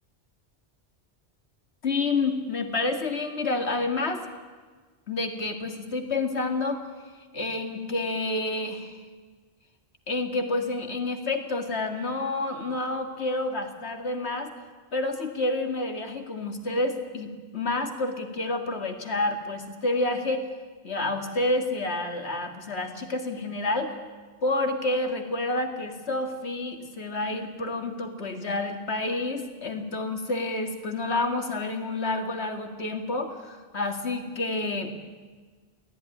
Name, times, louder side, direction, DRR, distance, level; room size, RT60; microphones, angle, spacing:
voice 1, 1.8-4.2 5.1-6.8 7.3-9.0 10.1-14.5 14.9-20.5 20.8-23.9 24.4-34.9, left 2 dB, 75° left, 5 dB, 2.4 m, -29 dB
23.5 x 16.5 x 9.9 m, 1.4 s
omnidirectional pair, 1.1 m